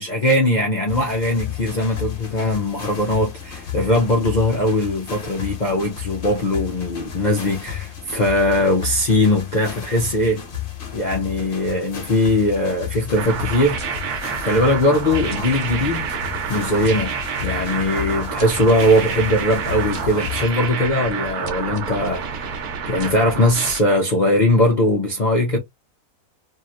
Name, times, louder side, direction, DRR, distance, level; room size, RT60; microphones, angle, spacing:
voice 1, 0.0-10.4 10.9-14.0 14.4-16.1 16.5-17.1 17.4-25.6, left 1 dB, 65° left, 0.4 m, -20 dB
sound 1, 0.9-20.5, left 10 dB, 45° left, 0.8 m, -33 dB
sound 2, 13.2-23.8, right 6 dB, 75° right, 1.2 m, -28 dB
2.9 x 2.8 x 2.3 m
omnidirectional pair, 1.7 m